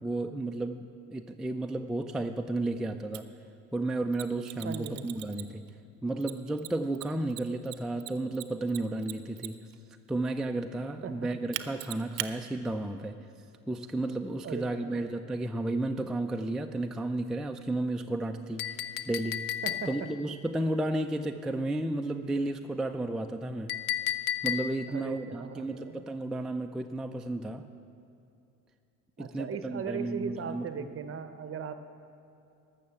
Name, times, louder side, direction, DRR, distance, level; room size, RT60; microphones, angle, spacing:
voice 1, 0.0-3.3 3.7-5.6 6.0-9.6 10.1-13.2 13.7-19.5 19.9-23.8 24.4-27.7 29.2-30.9, right 2 dB, ahead, 5 dB, 0.3 m, -33 dB
Mechanisms, 3.1-3.2 4.1-5.7 6.2-9.7 11.5-12.3, right 18 dB, 85° right, 0.6 m, -39 dB
voice 2, 4.6-5.2 11.0-11.3 14.4-15.1 19.6-20.1 24.9-26.1 29.2-31.7, right 6 dB, 40° right, 10 dB, 0.8 m, -38 dB
Chink clink, 18.6-20.2 23.7-25.0, left 11 dB, 75° left, 0.6 m, -33 dB
12.5 x 6.6 x 7.0 m, 2.7 s
supercardioid pair, 90°, 35 cm